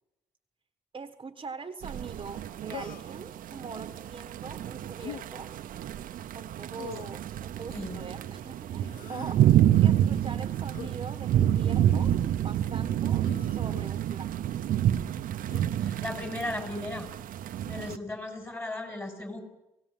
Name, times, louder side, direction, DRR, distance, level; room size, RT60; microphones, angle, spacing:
voice 1, 0.9-5.5 6.3-12.2 12.4-14.4, right 5 dB, 40° right, 9 dB, 1.2 m, -43 dB
sound 1, 1.8-18.0, right 11 dB, 85° right, 0.8 m, -28 dB
Human voice, 2.7-3.2 5.0-5.3 6.7-7.2 8.8-9.4 10.7-11.0 11.9-12.2 13.2-13.8 15.5-15.7, left 8 dB, 85° left, 1.0 m, -43 dB
voice 2, 15.8-17.1 17.6-19.4, left 2 dB, 15° left, 5 dB, 6.4 m, -36 dB
26.5 x 17.5 x 7.4 m, 0.93 s
cardioid pair, 75°, 14 cm